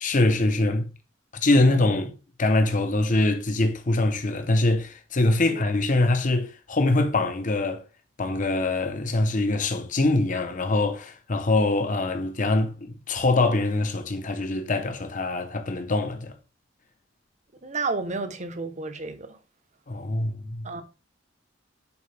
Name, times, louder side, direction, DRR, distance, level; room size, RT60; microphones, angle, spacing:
voice 1, 0.0-0.9 1.4-2.1 2.4-7.8 8.2-16.3 19.9-20.7, left 2 dB, 45° left, 0.8 m, -23 dB
voice 2, 1.5-1.9 5.5-5.6 17.6-19.4 20.6-20.8, right 3 dB, 40° right, 0.9 m, -32 dB
7.1 x 4.7 x 3.3 m
head